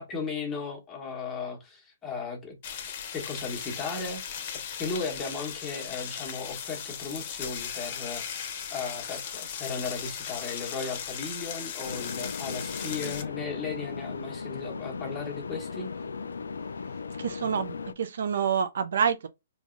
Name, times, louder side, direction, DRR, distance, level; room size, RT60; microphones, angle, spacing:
voice 1, 0.0-2.5 2.9-4.2 4.8-15.9, left 4 dB, 15° left, 1.2 m, -36 dB
sound 1, 2.6-13.2, left 8 dB, 45° left, 0.8 m, -37 dB
sound 2, 11.8-17.9, left 5 dB, 85° left, 0.3 m, -37 dB
voice 2, 17.2-19.3, right 7 dB, 70° right, 0.4 m, -27 dB
3.7 x 3.0 x 2.5 m
hypercardioid pair, 140°, 0 cm